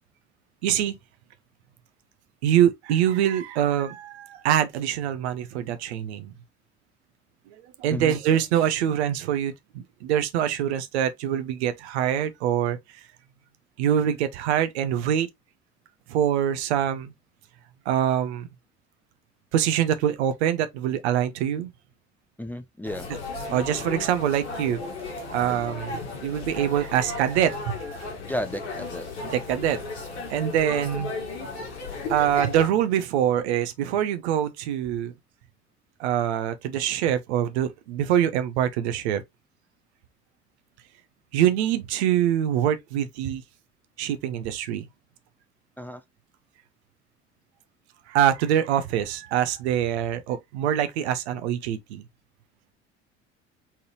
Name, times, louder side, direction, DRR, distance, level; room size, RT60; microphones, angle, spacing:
voice 1, 0.6-1.0 2.4-6.3 7.8-12.8 13.8-15.3 16.1-17.1 17.9-18.5 19.5-21.7 23.5-24.8 25.3-28.1 29.3-29.8 30.3-31.1 32.1-35.1 36.0-39.2 41.3-43.4 44.0-44.8 48.1-52.0, right 10 dB, 70° right, 0.9 m, -24 dB
voice 2, 22.4-23.1 28.3-29.0 45.8-46.0, left 1 dB, 5° left, 0.5 m, -32 dB
sound 1, 22.8-32.7, left 3 dB, 75° left, 1.9 m, -35 dB
4.3 x 3.9 x 3.0 m
figure-of-eight pair, 55°, 35 cm